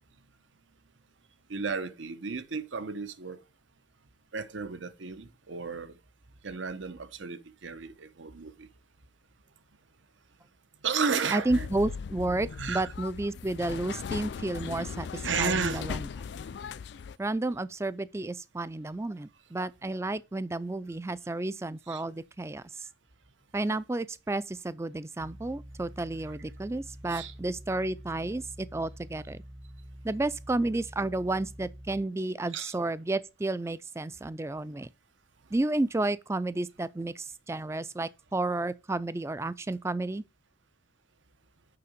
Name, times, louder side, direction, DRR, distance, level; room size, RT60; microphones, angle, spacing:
voice 1, 1.5-3.4 4.3-5.9 6.4-8.7 10.8-11.7 12.6-12.9 15.2-15.8 21.9-22.0 27.1-27.3 32.5-32.7, right 5 dB, 75° right, 1.0 m, -33 dB
voice 2, 11.3-16.1 17.2-22.9 23.5-29.4 30.0-34.9 35.5-40.2, right 2 dB, 15° right, 0.3 m, -31 dB
sound 1, 11.5-17.2, left 6 dB, 60° left, 0.3 m, -38 dB
sound 2, 25.2-32.0, equal, 30° right, 0.8 m, -47 dB
6.8 x 5.8 x 5.2 m
head